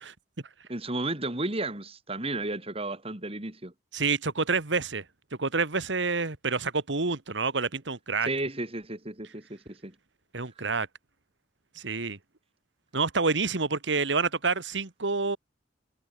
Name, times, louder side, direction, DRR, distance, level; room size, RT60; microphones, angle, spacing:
voice 1, 0.7-3.7 8.2-9.9 10.6-10.7, right 2 dB, 30° right, 3.5 m, -33 dB
voice 2, 3.9-5.0 5.4-8.3 10.3-10.9 11.7-12.2 12.9-15.4, right 4 dB, 70° right, 1.7 m, -28 dB
head